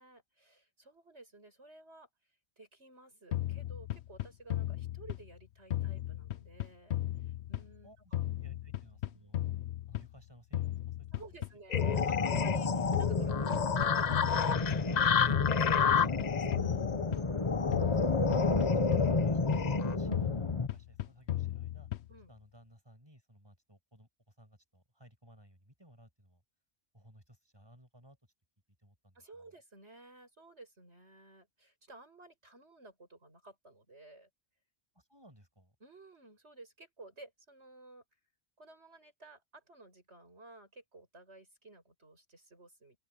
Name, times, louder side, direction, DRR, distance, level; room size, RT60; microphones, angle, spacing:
voice 1, 0.0-2.1 2.6-8.3 11.1-16.9 22.1-22.3 29.1-34.3 35.8-38.0 38.6-43.0, right 2 dB, 80° right, 7.7 m, -55 dB
sound 1, 3.3-5.4 5.7-7.9 8.1-10.2 10.5-12.6 12.9-14.9 15.3-17.4 17.7-19.8 20.1-22.2, left 13 dB, 75° left, 1.0 m, -36 dB
voice 2, 7.8-9.4 9.9-11.3 12.0-12.2 17.7-21.9 22.3-26.4 26.9-28.2 28.8-29.5 34.9-35.8, equal, 20° right, 7.4 m, -60 dB
sound 2, 11.7-19.9, left 7 dB, 45° left, 0.6 m, -32 dB
sound 3, 11.8-20.7, left 3 dB, 30° left, 1.1 m, -31 dB
open air
omnidirectional pair, 1.1 m